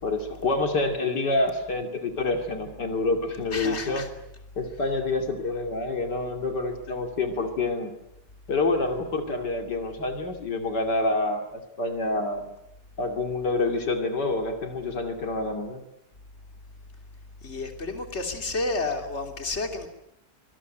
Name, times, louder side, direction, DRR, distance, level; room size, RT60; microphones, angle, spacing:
voice 1, 0.0-4.1 4.6-7.9 8.5-12.5 13.0-15.8, left 2 dB, 75° left, 5 dB, 3.2 m, -27 dB
voice 2, 3.5-4.1 17.4-19.9, left 3 dB, 40° left, 5 dB, 3.3 m, -30 dB
25.0 x 21.0 x 9.1 m, 0.81 s
omnidirectional pair, 1.8 m